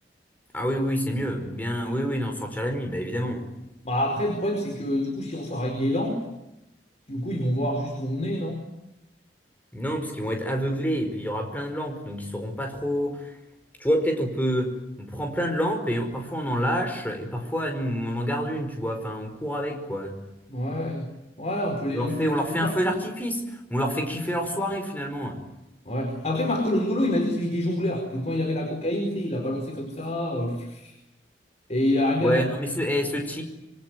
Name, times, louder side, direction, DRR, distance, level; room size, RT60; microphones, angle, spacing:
voice 1, 0.5-3.5 9.7-13.3 13.8-20.2 21.9-25.4 32.2-33.4, equal, 10° left, 4 dB, 5.1 m, -27 dB
voice 2, 3.8-6.2 7.1-8.6 20.5-21.1 21.4-23.0 25.8-30.9 31.7-32.4, left 1 dB, 40° left, 4 dB, 4.6 m, -27 dB
26.0 x 24.5 x 9.4 m, 0.92 s
head